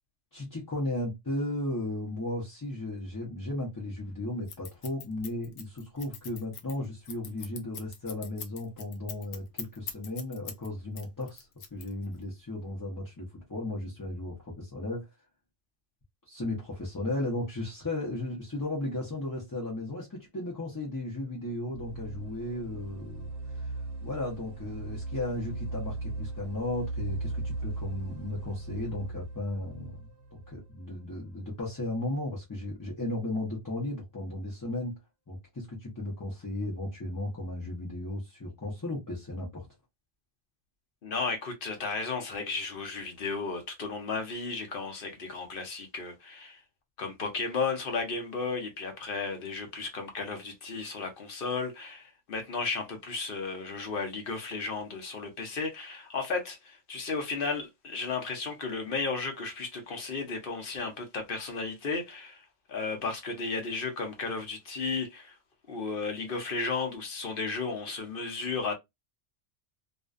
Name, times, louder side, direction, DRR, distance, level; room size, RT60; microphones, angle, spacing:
voice 1, 0.3-15.1 16.3-23.3 23.5-23.7 24.0-30.0 30.3-35.0 35.3-39.7, left 2 dB, 25° left, 0.5 m, -35 dB
Scissors, 4.5-10.7 11.0-12.2, left 7 dB, 80° left, 0.9 m, -42 dB
sound 1, 21.7-31.5, right 2 dB, 70° right, 0.8 m, -38 dB
voice 2, 41.0-46.6 47.0-65.4 65.7-68.7, left 4 dB, 55° left, 0.8 m, -34 dB
2.4 x 2.1 x 2.3 m
omnidirectional pair, 1.2 m